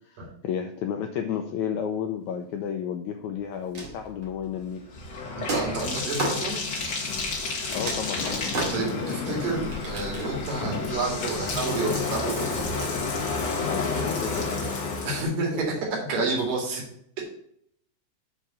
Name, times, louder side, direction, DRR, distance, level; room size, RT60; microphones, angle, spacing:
voice 1, 0.1-4.8 7.7-8.2 13.6-14.5 16.2-16.3, left 8 dB, 80° left, 5 dB, 1.7 m, -32 dB
sound 1, 3.5-4.4 5.5-6.5 7.4-7.5 7.8-9.2 9.7-10.6 12.4-12.9, right 2 dB, 40° right, 2.7 m, -34 dB
Bathtub (filling or washing), 3.9-15.2, left 4 dB, 40° left, 2.0 m, -31 dB
voice 2, 5.4-6.6 8.7-12.7 15.0-16.8 17.2-17.3, right 3 dB, 70° right, 0 dB, 3.9 m, -30 dB
Sliding door, 8.1-13.2, left 3 dB, 60° left, 2.3 m, -36 dB
7.2 x 4.8 x 6.8 m, 0.67 s
omnidirectional pair, 4.1 m